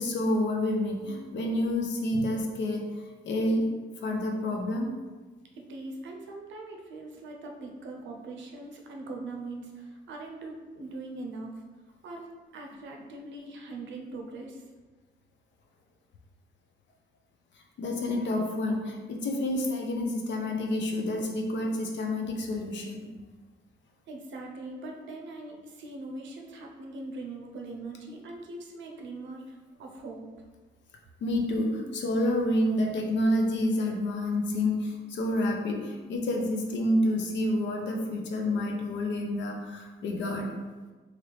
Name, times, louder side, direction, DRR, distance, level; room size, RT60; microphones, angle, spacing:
voice 1, 0.0-2.8 3.2-3.7 4.0-4.9 17.8-23.1 31.2-40.5, left 1 dB, 65° left, 1 dB, 0.6 m, -28 dB
voice 2, 5.5-11.5 12.0-14.6 24.1-30.3, right 2 dB, 70° right, 1 dB, 0.6 m, -41 dB
3.0 x 2.4 x 3.2 m, 1.3 s
cardioid pair, 90°, 20 cm